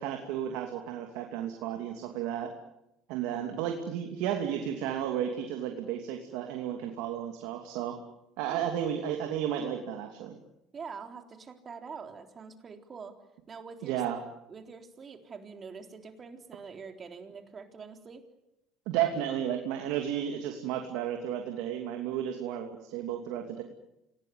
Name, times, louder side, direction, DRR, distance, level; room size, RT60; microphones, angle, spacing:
voice 1, 0.0-2.5 3.1-8.0 8.4-10.4 13.8-14.2 18.9-23.6, right 10 dB, 75° right, 4 dB, 2.8 m, -33 dB
voice 2, 10.7-13.2 13.5-14.0 14.5-18.2, right 5 dB, 35° right, 6 dB, 3.8 m, -45 dB
26.5 x 19.0 x 9.6 m, 0.88 s
supercardioid pair, 80°, 0 cm